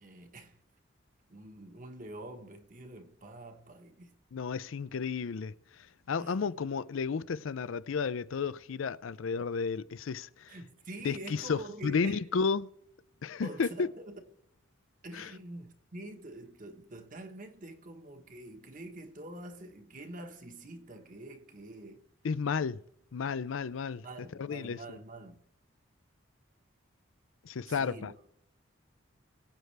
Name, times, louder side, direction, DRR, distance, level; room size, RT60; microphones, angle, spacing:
voice 1, 0.0-0.6 1.3-4.2 6.2-6.5 10.5-12.2 13.4-14.2 15.0-22.1 24.0-25.4 27.7-28.1, right 1 dB, 40° right, 1.2 m, -46 dB
voice 2, 4.3-10.5 11.0-12.7 13.2-13.9 15.1-15.3 22.2-22.8 23.1-24.0 24.4-24.8 27.4-28.1, left 5 dB, 75° left, 0.5 m, -32 dB
22.0 x 8.0 x 3.3 m
head